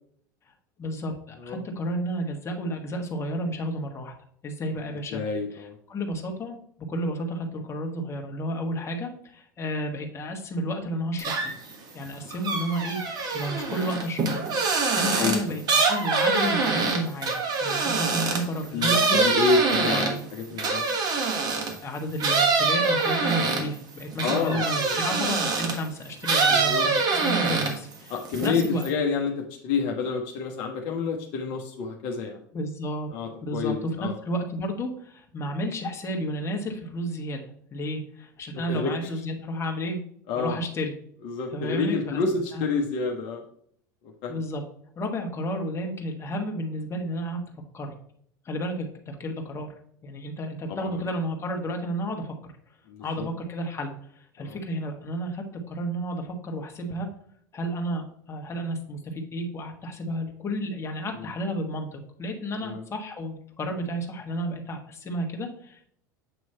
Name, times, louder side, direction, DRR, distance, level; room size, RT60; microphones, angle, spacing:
voice 1, 0.8-4.1 4.4-5.2 5.9-6.6 6.9-11.5 11.9-14.4 14.7-19.3 19.8-20.3 21.8-28.1 28.4-28.8 32.5-33.1 33.4-40.0 40.3-40.9 41.5-42.2 42.5-42.6 44.3-44.6 45.0-47.4 47.7-47.9 48.4-49.7 50.0-52.3 53.0-54.0 54.3-57.1 57.5-65.9, equal, 25° left, 2 dB, 1.4 m, -32 dB
voice 2, 4.9-5.8 15.1-15.4 18.7-20.8 24.2-25.0 26.5-26.9 28.1-32.4 33.1-34.1 38.5-39.1 40.3-40.6 41.2-43.4 44.0-44.4 50.7-51.0 52.9-53.3 54.4-54.6 61.1-61.3 62.6-62.8, left 4 dB, 60° left, 1 dB, 1.0 m, -29 dB
sound 1, 11.2-11.7 12.1-21.8 22.2-25.8 26.2-27.9 28.2-28.9, right 4 dB, 40° right, 1.3 m, -25 dB
7.9 x 3.1 x 4.2 m, 0.65 s
hypercardioid pair, 90°, 10 cm